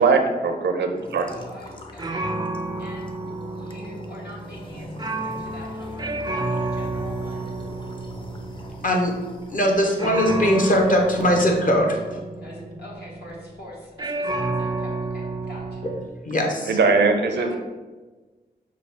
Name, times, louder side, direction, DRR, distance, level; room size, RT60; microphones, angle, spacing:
voice 1, 0.0-1.3 16.7-17.5, right 4 dB, 80° right, 5 dB, 0.5 m, -20 dB
sound 1, 1.0-11.4, left 2 dB, 30° left, 0.6 m, -42 dB
voice 2, 1.2-2.2 2.8-3.1 3.5-7.5 12.4-15.9 16.7-16.8 17.4-17.6, left 1 dB, 70° left, -4 dB, 1.4 m, -44 dB
sound 2, 1.3-1.7 2.0-13.6 14.0-16.1, right 2 dB, 25° right, 0.4 m, -31 dB
voice 3, 8.8-9.2 9.5-12.2 16.2-16.8, equal, 50° left, 0 dB, 1.0 m, -20 dB
6.0 x 2.3 x 3.4 m, 1.3 s
cardioid pair, 50°, 18 cm